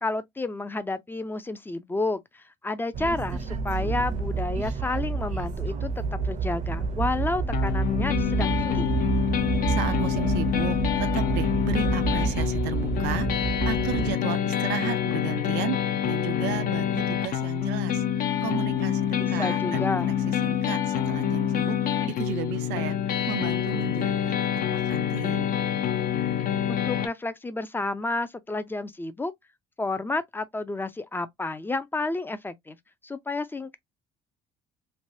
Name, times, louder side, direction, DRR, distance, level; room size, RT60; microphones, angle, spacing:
voice 1, 0.0-8.9 19.2-20.2 26.7-29.3 29.8-32.8 33.0-33.8, left 2 dB, 10° left, 0.4 m, -31 dB
sound 1, 2.9-14.1, right 5 dB, 45° right, 0.6 m, -29 dB
sound 2, 7.5-27.1, left 9 dB, 55° left, 0.6 m, -26 dB
voice 2, 9.7-13.3 13.7-19.9 20.3-21.8 22.1-25.5, right 12 dB, 90° right, 0.5 m, -34 dB
3.2 x 2.2 x 2.6 m
cardioid pair, 110°, 17 cm